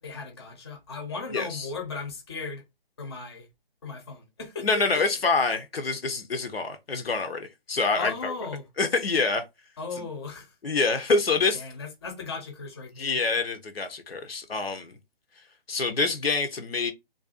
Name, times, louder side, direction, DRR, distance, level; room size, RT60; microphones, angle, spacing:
voice 1, 0.0-2.6 3.0-3.5 3.8-4.8 7.9-8.6 9.8-10.5 11.5-13.2, left 4 dB, 25° left, 0.6 m, -37 dB
voice 2, 1.3-1.7 4.6-8.3 8.8-9.4 10.0-10.1 10.6-11.6 13.0-15.0 15.7-16.9, left 4 dB, 75° left, 0.6 m, -26 dB
2.4 x 2.2 x 2.4 m
figure-of-eight pair, 145°, 30 cm